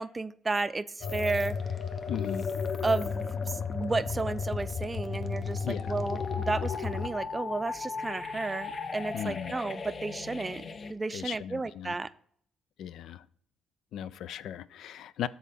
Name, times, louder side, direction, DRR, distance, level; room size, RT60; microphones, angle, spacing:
voice 1, 0.0-1.6 2.8-10.6 10.9-12.1, right 3 dB, 25° right, 0.4 m, -32 dB
sound 1, 1.0-10.9, left 5 dB, 45° left, 0.7 m, -34 dB
voice 2, 2.1-2.5 5.6-5.9 9.1-9.6 11.1-11.9 12.8-13.3 13.9-15.3, left 10 dB, 75° left, 0.4 m, -37 dB
7.4 x 4.2 x 6.6 m
supercardioid pair, 70°, 0 cm